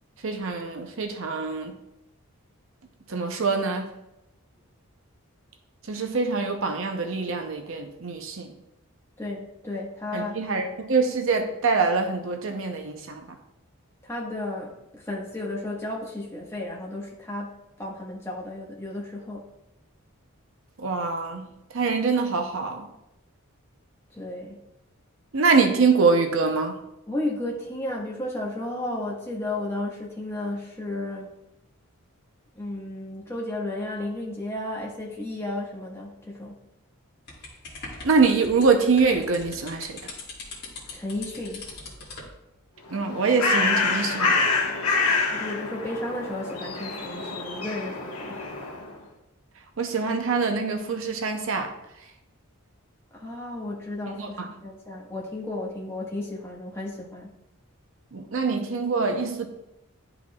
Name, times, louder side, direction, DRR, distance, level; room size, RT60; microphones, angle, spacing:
voice 1, 0.2-1.8 3.1-3.9 5.9-8.5 10.1-13.2 20.8-22.9 25.3-26.8 38.0-40.1 42.9-44.5 49.8-51.7 54.1-54.5 58.1-59.4, right 4 dB, 60° right, 5 dB, 0.7 m, -24 dB
voice 2, 9.2-10.3 14.0-19.5 24.1-24.6 27.1-31.3 32.5-36.6 40.9-41.7 45.3-48.5 53.1-57.3, left 1 dB, 10° left, -4 dB, 1.3 m, -33 dB
sound 1, 37.3-42.3, left 3 dB, 45° left, 1.8 m, -41 dB
Bird, 42.9-48.9, left 3 dB, 80° left, 1.2 m, -26 dB
10.5 x 5.0 x 2.3 m, 0.88 s
head